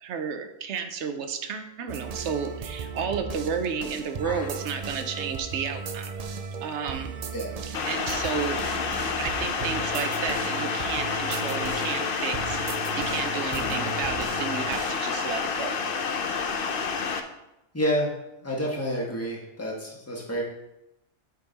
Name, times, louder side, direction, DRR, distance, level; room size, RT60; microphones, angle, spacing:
voice 1, 0.0-6.1 6.6-7.1 7.9-8.6 9.2-12.6 12.9-15.7, right 6 dB, 75° right, 7 dB, 1.0 m, -32 dB
sound 1, 1.9-15.1, right 5 dB, 55° right, 0.4 m, -36 dB
sound 2, 7.7-17.2, left 5 dB, 55° left, 0.8 m, -29 dB
voice 2, 13.5-13.9 17.7-18.1 18.4-20.4, equal, 15° left, -3 dB, 1.4 m, -29 dB
9.5 x 4.0 x 4.0 m, 0.91 s
omnidirectional pair, 1.2 m